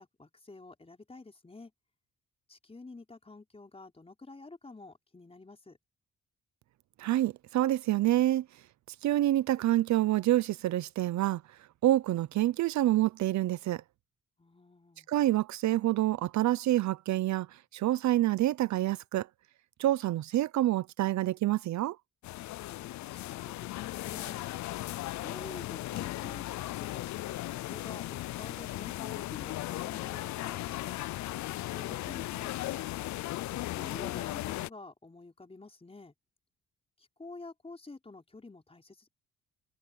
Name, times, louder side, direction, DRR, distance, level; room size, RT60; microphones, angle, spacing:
voice 1, 0.0-1.7 2.5-5.8 14.4-15.1 22.7-24.4 25.2-27.1 27.5-31.0 31.5-32.9 33.5-36.1 37.0-39.1, left 3 dB, 20° left, 4.9 m, -49 dB
voice 2, 7.0-8.5 9.0-11.4 11.8-13.8 15.1-19.3 19.8-22.0, right 14 dB, 70° right, 0.6 m, -27 dB
sound 1, 22.2-34.7, left 16 dB, 70° left, 0.5 m, -37 dB
cardioid pair, 90°, 30 cm